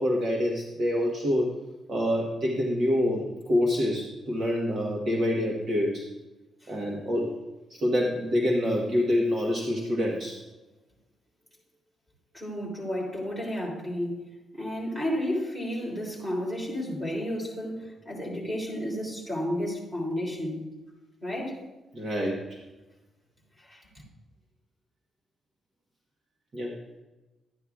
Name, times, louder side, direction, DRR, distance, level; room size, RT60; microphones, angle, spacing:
voice 1, 0.0-1.6 1.9-6.1 6.7-7.3 7.7-10.4 21.9-22.6 26.5-26.7, left 1 dB, 40° right, -2 dB, 1.2 m, -26 dB
voice 2, 12.3-14.3 14.5-20.6 21.2-21.6 23.6-23.8, equal, 10° right, -3 dB, 3.1 m, -32 dB
12.5 x 9.8 x 2.4 m, 1.1 s
cardioid pair, 170°, 0 cm